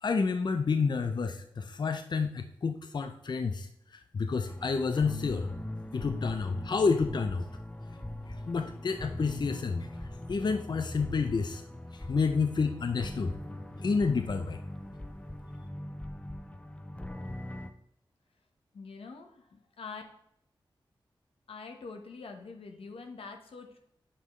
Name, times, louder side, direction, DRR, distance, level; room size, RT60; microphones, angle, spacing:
voice 1, 0.0-5.5 5.9-7.5 8.5-9.9 10.3-11.6 11.9-13.4 13.8-14.6, left 4 dB, 50° left, 8 dB, 0.6 m, -29 dB
sound 1, 4.5-17.7, left 1 dB, 15° left, 0.7 m, -41 dB
voice 2, 18.7-20.0 21.5-23.8, left 4 dB, 90° left, 4 dB, 1.1 m, -45 dB
9.7 x 5.5 x 3.1 m, 0.74 s
cardioid pair, 60°, 9 cm